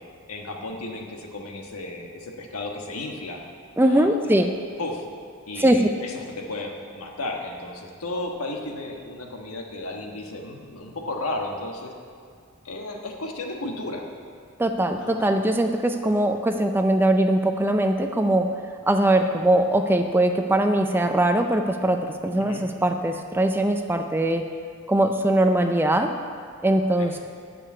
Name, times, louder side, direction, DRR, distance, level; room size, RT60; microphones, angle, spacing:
voice 1, 0.3-3.4 3.8-4.4 4.8-5.1 5.5-11.9 12.6-14.1 15.0-15.3 22.4-22.6 27.0-27.2, left 2 dB, 80° left, 2 dB, 1.3 m, -34 dB
voice 2, 3.8-4.5 5.6-5.8 14.6-18.5 18.9-24.4 24.9-26.1 26.6-27.2, right 1 dB, 10° right, 5 dB, 0.4 m, -21 dB
8.7 x 6.7 x 8.3 m, 2.1 s
head